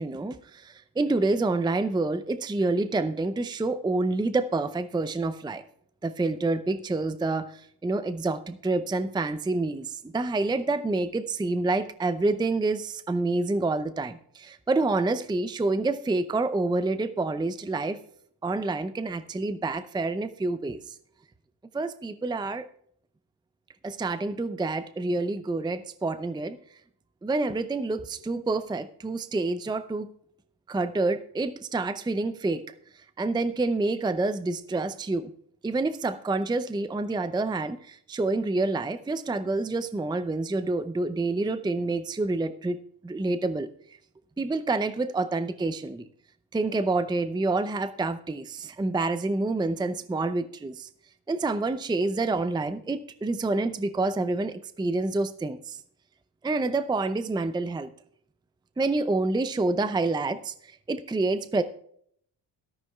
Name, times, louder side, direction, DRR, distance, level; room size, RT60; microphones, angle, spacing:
voice 1, 0.0-5.6 6.0-18.0 18.4-20.9 21.7-22.7 23.8-26.6 27.2-30.1 30.7-32.6 32.9-35.3 35.6-42.8 43.0-43.7 44.4-46.1 46.5-50.9 51.3-55.8 56.4-57.9 58.8-61.6, right 3 dB, 10° right, 12 dB, 0.6 m, -28 dB
14.0 x 13.0 x 2.4 m, 0.66 s
supercardioid pair, 60°, 50 cm